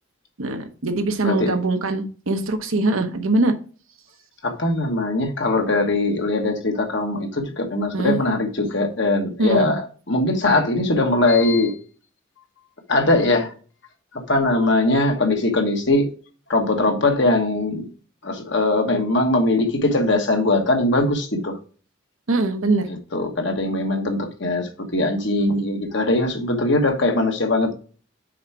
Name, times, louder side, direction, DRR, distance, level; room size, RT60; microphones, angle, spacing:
voice 1, 0.4-3.5 7.9-8.2 9.4-9.7 22.3-22.9, right 2 dB, 75° right, 7 dB, 1.0 m, -22 dB
voice 2, 4.4-9.8 10.1-11.7 12.9-13.5 14.1-16.1 16.5-17.9 18.2-21.6 22.9-27.7, left 2 dB, 55° left, 4 dB, 1.4 m, -21 dB
6.4 x 4.6 x 4.6 m, 0.39 s
head